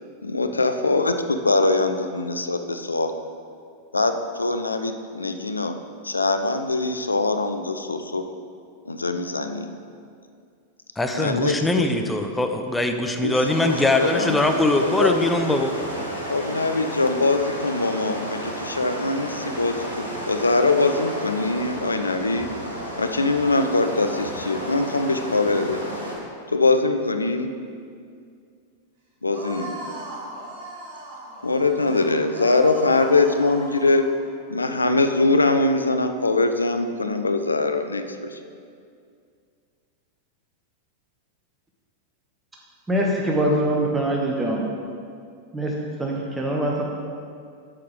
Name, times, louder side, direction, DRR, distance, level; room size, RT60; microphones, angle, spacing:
voice 1, 0.2-3.1 3.9-5.8 6.0-8.2 8.9-9.7 11.1-11.8 13.2-14.4 14.7-15.2 16.3-22.5 23.0-25.9 26.5-27.5 29.2-29.8 31.4-34.1 34.5-38.4, left 3 dB, 80° left, 0.5 m, -22 dB
voice 2, 11.0-15.7, left 2 dB, 10° left, 0.7 m, -22 dB
sound 1, 13.4-26.1, equal, 90° right, 1.8 m, -32 dB
sound 2, 29.3-34.2, right 1 dB, 45° right, 1.9 m, -37 dB
voice 3, 42.9-44.6 45.5-45.7 46.0-46.8, right 1 dB, 10° right, 0.9 m, -23 dB
9.6 x 6.5 x 3.7 m
figure-of-eight pair, 90°, 0 cm